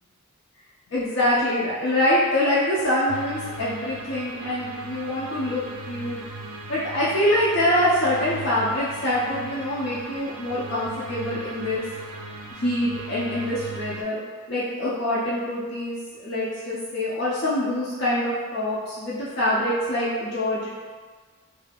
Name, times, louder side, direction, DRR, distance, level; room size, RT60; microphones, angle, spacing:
voice 1, 0.9-5.6 5.9-6.2 6.7-11.8 12.6-14.2 14.5-20.7, left 1 dB, 50° left, -9 dB, 0.5 m, -25 dB
sound 1, 3.1-14.0, right 2 dB, 65° right, 0.3 m, -38 dB
2.6 x 2.3 x 3.4 m, 1.5 s
head